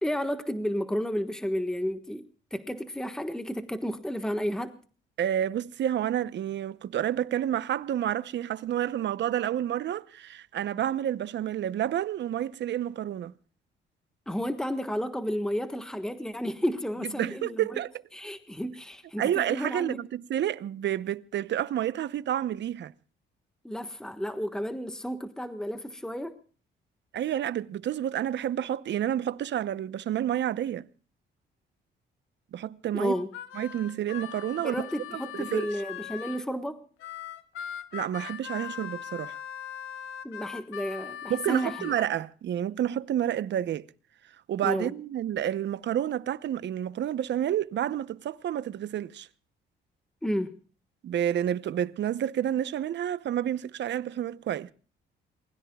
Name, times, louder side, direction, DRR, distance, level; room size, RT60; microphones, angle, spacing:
voice 1, 0.0-2.2 2.5-4.8 14.3-17.8 18.1-20.0 23.6-26.4 32.9-33.3 34.6-36.8 40.2-41.9 44.6-44.9 50.2-50.5, equal, 5° left, 1.4 m, -32 dB
voice 2, 5.2-13.3 17.2-17.9 19.2-22.9 27.1-30.9 32.5-33.2 33.5-34.7 35.3-35.7 37.9-39.4 41.3-43.9 44.5-49.3 51.0-54.7, right 11 dB, 65° right, 0.8 m, -29 dB
Harmonica, 33.0-36.5 37.0-42.1, left 10 dB, 90° left, 1.3 m, -40 dB
27.5 x 20.5 x 2.3 m
cardioid pair, 90°, 20 cm